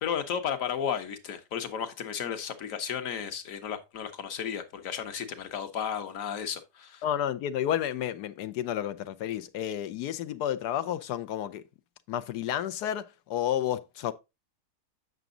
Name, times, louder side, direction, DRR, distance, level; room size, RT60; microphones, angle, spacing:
voice 1, 0.0-7.0, left 8 dB, 60° left, 1.4 m, -33 dB
voice 2, 7.0-11.6 12.1-14.1, left 10 dB, 85° left, 1.3 m, -31 dB
8.0 x 6.0 x 3.7 m
omnidirectional pair, 1.7 m